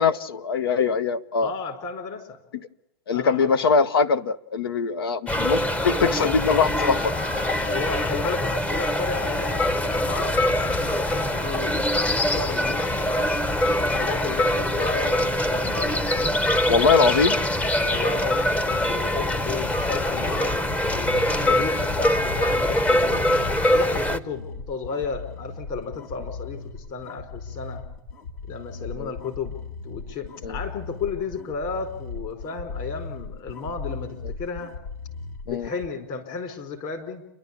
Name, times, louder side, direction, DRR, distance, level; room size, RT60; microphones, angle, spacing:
voice 1, 0.0-1.5 3.1-7.1 16.7-17.4 29.0-29.1 30.4-30.6 35.5-35.7, left 5 dB, 85° left, 15 dB, 0.9 m, -22 dB
voice 2, 1.4-2.4 3.1-3.5 7.6-13.1 13.8-16.5 17.8-23.3 23.7-27.8 28.5-29.6 29.8-34.7 35.4-37.3, left 4 dB, 45° left, 5 dB, 4.5 m, -33 dB
sound 1, 5.3-24.2, left 1 dB, 10° left, 0.8 m, -23 dB
sound 2, 19.7-35.9, left 4 dB, 70° left, 2.8 m, -38 dB
29.5 x 12.0 x 8.5 m, 0.92 s
hypercardioid pair, 115°, 12 cm